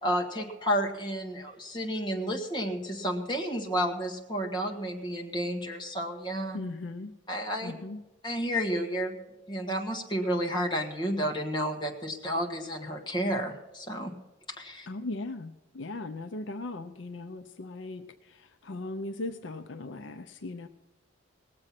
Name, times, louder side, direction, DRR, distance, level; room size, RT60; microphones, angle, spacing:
voice 1, 0.0-6.6 7.3-7.7 8.2-9.2 9.5-14.1 14.6-14.9, equal, 20° left, 1 dB, 1.4 m, -31 dB
voice 2, 6.5-7.1 7.6-8.0 14.9-20.7, left 2 dB, 70° left, 9 dB, 0.6 m, -38 dB
18.5 x 7.7 x 5.8 m, 1.0 s
head